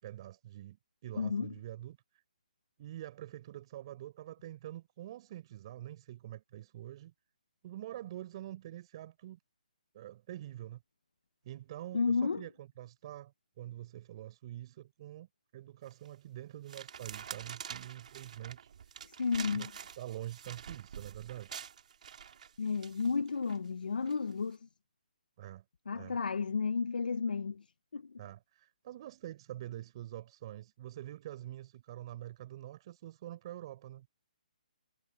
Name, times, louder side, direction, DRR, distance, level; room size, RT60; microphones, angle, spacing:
voice 1, 0.0-2.0 2.8-7.1 7.6-9.4 9.9-10.8 11.4-15.3 15.5-18.7 19.5-19.7 20.0-21.5 25.4-25.6 25.9-26.2 28.2-34.1, right 13 dB, 35° right, 5.2 m, -46 dB
voice 2, 1.1-1.5 11.9-12.4 19.2-19.7 22.6-24.6 25.9-27.6 27.9-28.2, left 5 dB, 80° left, 0.9 m, -32 dB
sound 1, 15.9-16.2 16.7-23.6 24.1-24.3, right 7 dB, 55° right, 2.7 m, -47 dB
hypercardioid pair, 155°, 5 cm